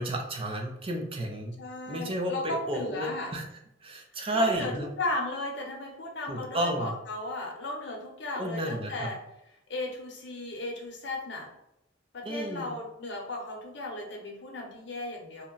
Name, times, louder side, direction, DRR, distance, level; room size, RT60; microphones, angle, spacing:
voice 1, 0.0-1.5 1.9-3.4 3.8-4.9 6.3-6.9 8.4-9.1 12.2-12.7, equal, 30° right, 2 dB, 0.5 m, -32 dB
voice 2, 1.6-3.3 4.3-9.2 9.7-11.5 12.1-15.5, left 1 dB, 65° left, 0 dB, 0.7 m, -35 dB
2.8 x 2.0 x 3.7 m, 0.84 s
head